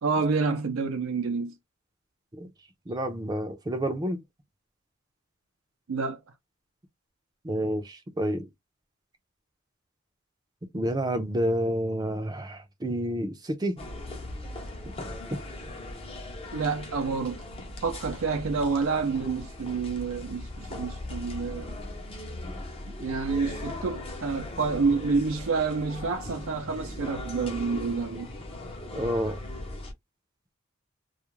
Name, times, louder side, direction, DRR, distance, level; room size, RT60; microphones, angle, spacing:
voice 1, 0.0-1.5 5.9-6.2 16.5-17.4 17.8-21.8 23.0-28.3, right 4 dB, 85° right, 0.5 m, -28 dB
voice 2, 2.9-4.2 7.4-8.5 10.7-13.8 15.3-15.4 28.9-29.4, equal, 20° right, 0.5 m, -29 dB
sound 1, 13.8-29.9, left 1 dB, 30° left, 0.6 m, -39 dB
2.3 x 2.1 x 3.0 m
head